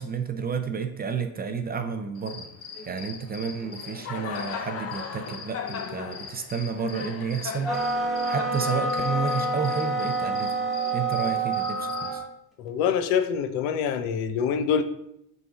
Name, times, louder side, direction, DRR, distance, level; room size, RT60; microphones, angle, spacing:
voice 1, 0.0-2.5 2.9-10.6 10.9-12.2, right 6 dB, 20° right, 7 dB, 0.4 m, -31 dB
Cricket, 2.1-12.2, left 6 dB, 30° left, 0.8 m, -38 dB
sound 1, 7.6-12.3, right 2 dB, ahead, 1.2 m, -27 dB
voice 2, 12.6-14.8, left 7 dB, 75° left, 8 dB, 0.9 m, -25 dB
8.1 x 3.9 x 4.0 m, 0.78 s
supercardioid pair, 120°, 45 cm